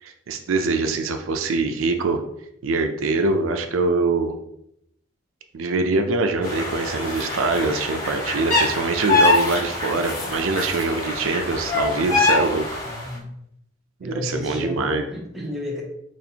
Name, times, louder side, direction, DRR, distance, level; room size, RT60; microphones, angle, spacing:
voice 1, 0.0-2.2 2.6-4.3 5.5-12.6 14.0-15.0, right 3 dB, 80° right, 6 dB, 0.4 m, -23 dB
sound 1, 6.4-13.1, left 2 dB, 45° left, 1.5 m, -24 dB
voice 2, 12.8-13.3 14.0-15.8, left 1 dB, ahead, -4 dB, 0.8 m, -32 dB
4.2 x 3.0 x 2.8 m, 0.75 s
head